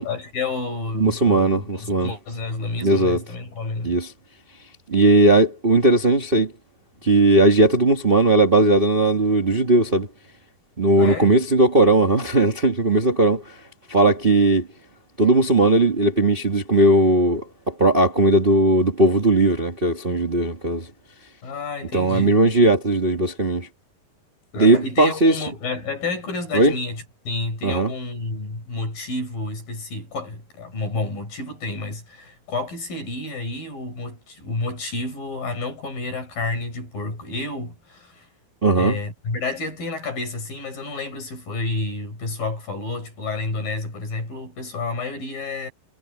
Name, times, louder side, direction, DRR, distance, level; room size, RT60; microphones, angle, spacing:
voice 1, 0.0-3.9 11.0-11.3 21.4-22.4 24.5-38.3 38.8-45.7, left 3 dB, 85° left, 9.8 m, -30 dB
voice 2, 0.9-2.1 2.8-3.2 3.8-4.1 4.9-6.5 7.0-10.1 10.8-13.4 13.9-14.7 15.2-20.9 21.9-23.7 24.6-25.3 26.5-26.7 27.6-27.9 38.6-39.0, right 2 dB, 25° right, 1.2 m, -18 dB
omnidirectional pair, 4.0 m